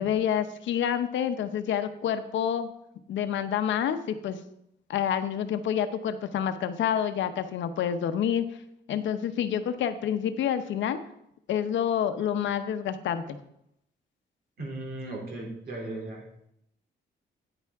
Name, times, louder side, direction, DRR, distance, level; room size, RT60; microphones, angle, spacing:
voice 1, 0.0-2.7 3.1-4.4 4.9-8.4 8.9-11.0 11.5-13.4, left 9 dB, 80° left, 9 dB, 0.8 m, -28 dB
voice 2, 14.6-16.2, right 2 dB, 55° right, -1 dB, 2.9 m, -36 dB
9.8 x 9.2 x 3.5 m, 0.77 s
wide cardioid pair, 180°, 19 cm